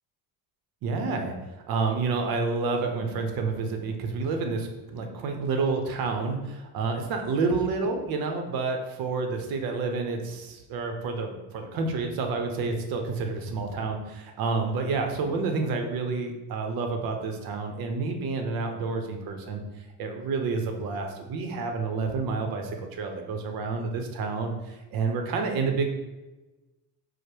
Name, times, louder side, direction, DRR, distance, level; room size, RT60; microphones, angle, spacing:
voice 1, 0.8-1.3 1.7-19.6 20.0-25.9, right 4 dB, 60° right, 4 dB, 0.7 m, -29 dB
4.9 x 2.1 x 4.5 m, 1.1 s
cardioid pair, 170°, 39 cm